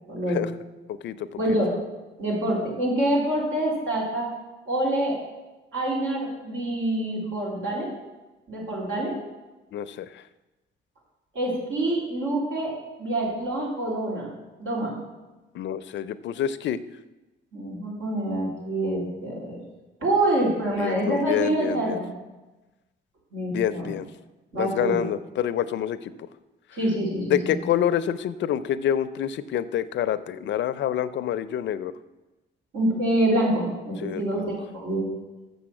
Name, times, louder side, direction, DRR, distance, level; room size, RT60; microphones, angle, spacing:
voice 1, 0.1-0.4 1.4-1.7 2.2-4.3 4.7-5.1 5.7-8.0 8.5-9.2 11.3-12.7 13.0-14.3 14.6-14.9 17.5-19.6 20.0-22.1 23.3-23.9 24.5-25.0 26.7-27.6 32.7-35.1, right 1 dB, 80° right, -4 dB, 3.7 m, -26 dB
voice 2, 0.9-1.3 9.7-10.2 15.5-16.8 20.8-22.0 23.5-24.1 24.5-26.1 27.3-31.9 34.0-34.5, left 10 dB, 65° left, 14 dB, 0.5 m, -27 dB
7.1 x 6.7 x 7.6 m, 1.1 s
cardioid pair, 90°, 20 cm